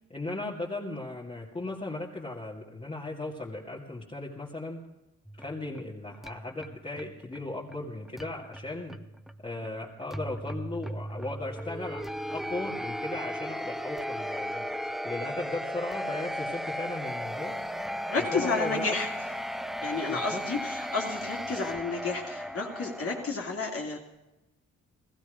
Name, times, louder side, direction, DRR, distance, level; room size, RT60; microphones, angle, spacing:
voice 1, 0.1-4.8 5.4-9.0 9.4-14.6 15.0-17.6 18.3-19.0 20.1-20.4, left 2 dB, 20° left, -5 dB, 2.3 m, -37 dB
sound 1, 5.2-23.3, equal, ahead, 0.6 m, -36 dB
voice 2, 18.1-19.1 19.8-24.0, left 4 dB, 45° left, -2 dB, 2.5 m, -31 dB
15.5 x 15.0 x 5.1 m, 0.99 s
cardioid pair, 90°, 30 cm